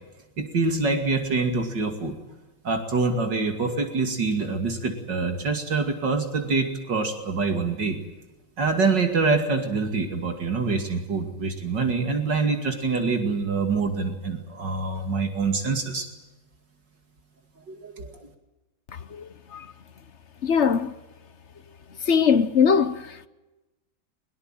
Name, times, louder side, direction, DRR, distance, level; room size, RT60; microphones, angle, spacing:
voice 1, 0.4-2.2 2.6-8.0 8.6-16.1 17.7-18.1, right 4 dB, 65° right, 3.1 m, -25 dB
voice 2, 18.9-19.7 20.4-20.9 22.0-23.3, left 6 dB, 45° left, 1.1 m, -22 dB
23.0 x 21.5 x 9.1 m
omnidirectional pair, 2.1 m